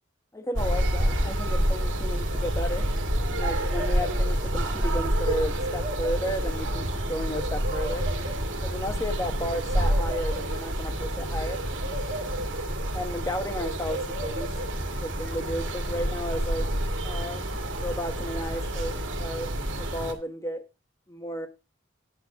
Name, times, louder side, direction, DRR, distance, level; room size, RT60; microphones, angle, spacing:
voice 1, 0.3-2.9 3.3-8.1 8.6-11.6 12.9-14.5 15.0-16.7 17.0-19.5 19.8-20.6 21.1-21.5, equal, 15° left, 1.3 m, -33 dB
sound 1, 0.5-20.1, right 1 dB, 75° right, 2.0 m, -28 dB
9.6 x 4.6 x 7.0 m
head